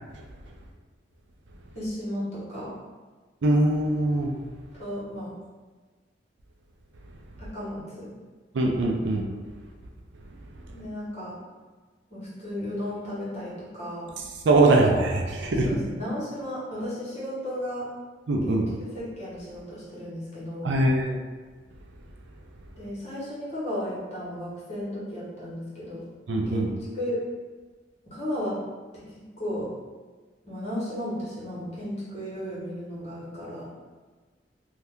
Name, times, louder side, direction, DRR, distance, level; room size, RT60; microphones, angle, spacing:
voice 1, 1.7-2.7 4.8-5.3 7.4-8.1 10.7-11.3 12.1-14.1 14.7-14.9 15.6-17.9 18.5-18.6 18.9-20.7 22.8-26.1 26.5-26.7 26.9-27.2 28.0-28.5 28.9-29.0 29.4-29.7 30.4-33.7, equal, 40° left, -9 dB, 1.2 m, -34 dB
voice 2, 3.4-4.3 8.5-9.3 14.4-15.8 18.3-18.7 20.6-21.2 26.3-26.7, right 2 dB, 80° right, 1 dB, 0.5 m, -22 dB
2.7 x 2.3 x 3.4 m, 1.4 s
head